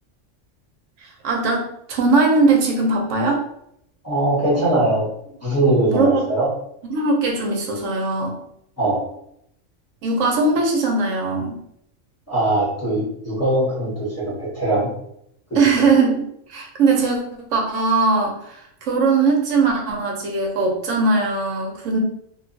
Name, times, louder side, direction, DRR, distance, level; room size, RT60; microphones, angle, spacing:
voice 1, 1.0-3.4 5.9-6.2 6.9-8.4 10.0-11.6 15.6-16.2 16.5-17.2 17.5-22.0, right 3 dB, 80° right, 1 dB, 1.0 m, -20 dB
voice 2, 4.0-5.1 5.4-6.5 8.8-9.0 12.3-14.9 15.5-15.6, right 1 dB, 15° left, -8 dB, 0.9 m, -21 dB
2.8 x 2.3 x 2.5 m, 0.73 s
omnidirectional pair, 1.3 m